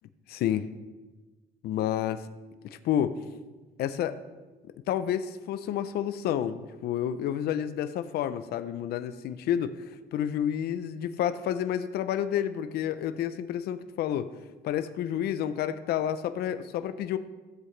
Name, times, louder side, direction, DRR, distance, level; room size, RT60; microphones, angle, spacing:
voice 1, 0.3-0.7 1.6-2.2 2.6-3.2 3.8-4.2 4.9-9.9 10.1-14.3 14.6-17.2, left 10 dB, 70° left, 11 dB, 0.6 m, -29 dB
15.0 x 7.7 x 3.2 m, 1.2 s
cardioid pair, 110°, 17 cm